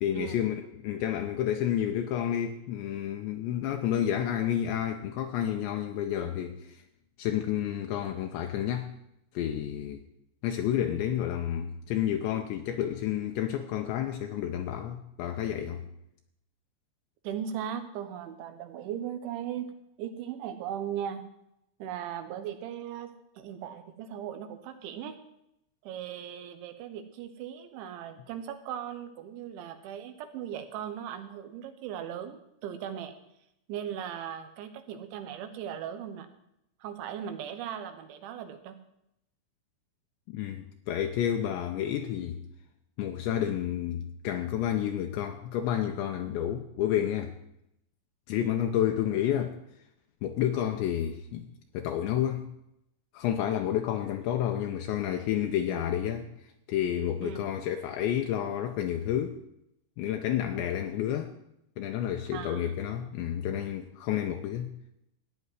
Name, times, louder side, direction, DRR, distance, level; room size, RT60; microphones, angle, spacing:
voice 1, 0.0-6.8 7.2-8.9 9.3-10.0 10.4-15.9 40.3-42.4 43.0-47.4 48.3-49.6 50.2-51.5 51.7-52.5 53.1-56.3 56.7-59.4 60.0-61.3 61.8-64.7, left 10 dB, 80° left, 2.8 m, -30 dB
voice 2, 17.3-19.7 20.0-21.2 21.8-25.2 25.8-33.1 33.7-36.3 36.8-38.8 57.2-57.4 62.3-62.8, right 9 dB, 80° right, 3.4 m, -38 dB
15.0 x 5.4 x 9.7 m
omnidirectional pair, 5.5 m